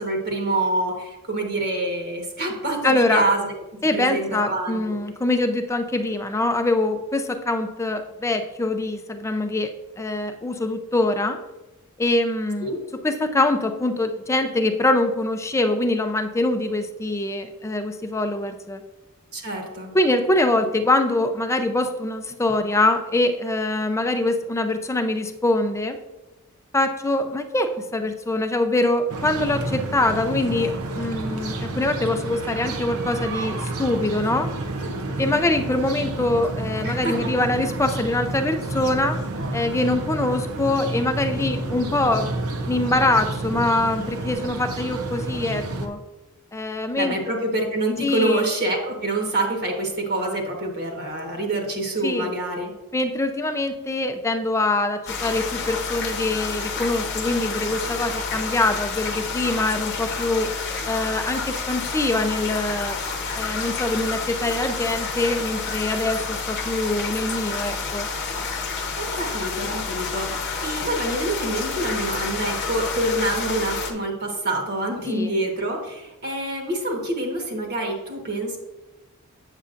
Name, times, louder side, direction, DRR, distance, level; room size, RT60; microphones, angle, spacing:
voice 1, 0.0-3.5 3.9-5.0 12.6-12.8 19.3-19.9 36.8-37.5 46.9-52.7 69.0-78.6, right 2 dB, 50° right, 0 dB, 1.3 m, -26 dB
voice 2, 2.8-3.3 3.8-9.7 10.0-11.4 12.0-12.7 13.0-18.8 19.9-26.0 26.7-34.5 35.2-39.2 39.5-42.3 42.7-46.0 46.5-47.1 48.0-48.4 52.0-52.3 52.9-60.5 60.9-63.0 63.4-68.1 75.1-75.3, left 2 dB, 15° left, 7 dB, 0.5 m, -23 dB
sound 1, 29.1-45.9, right 2 dB, 75° right, 0.7 m, -30 dB
sound 2, 55.1-73.9, left 4 dB, 55° left, 0.8 m, -29 dB
8.2 x 6.9 x 2.5 m, 1.0 s
head